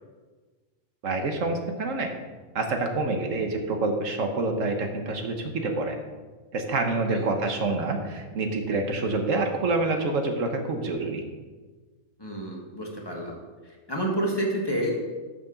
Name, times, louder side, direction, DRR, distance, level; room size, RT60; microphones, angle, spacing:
voice 1, 1.0-2.1 2.5-6.0 6.5-11.2, right 3 dB, 65° right, 4 dB, 1.4 m, -27 dB
voice 2, 12.2-13.4 13.6-14.9, right 1 dB, 15° left, -1 dB, 1.6 m, -29 dB
11.5 x 6.8 x 3.9 m, 1.4 s
omnidirectional pair, 1.5 m